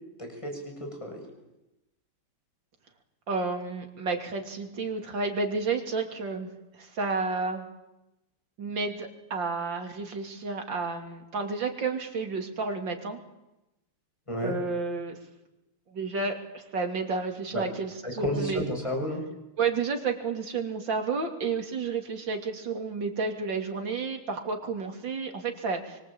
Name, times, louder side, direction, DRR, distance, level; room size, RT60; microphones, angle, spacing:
voice 1, 0.2-1.3 14.3-14.5 17.5-17.7 18.0-19.2, equal, 15° left, 2 dB, 7.1 m, -32 dB
voice 2, 3.3-6.5 6.7-7.6 8.6-13.2 14.4-15.2 15.9-18.6 19.6-26.0, right 4 dB, 55° right, 4 dB, 3.6 m, -31 dB
27.0 x 24.5 x 8.8 m, 0.95 s
omnidirectional pair, 2.4 m